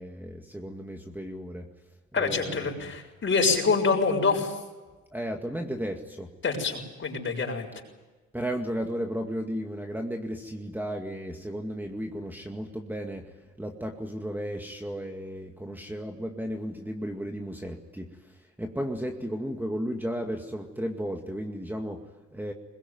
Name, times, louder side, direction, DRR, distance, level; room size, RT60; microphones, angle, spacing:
voice 1, 0.0-1.7 2.1-2.9 5.1-6.3 8.3-13.3 13.6-22.5, equal, 5° right, 3 dB, 2.2 m, -34 dB
voice 2, 2.1-4.5 6.4-7.7, left 4 dB, 40° left, 2 dB, 6.8 m, -26 dB
21.5 x 21.5 x 9.5 m, 1.2 s
cardioid pair, 90°, 30 cm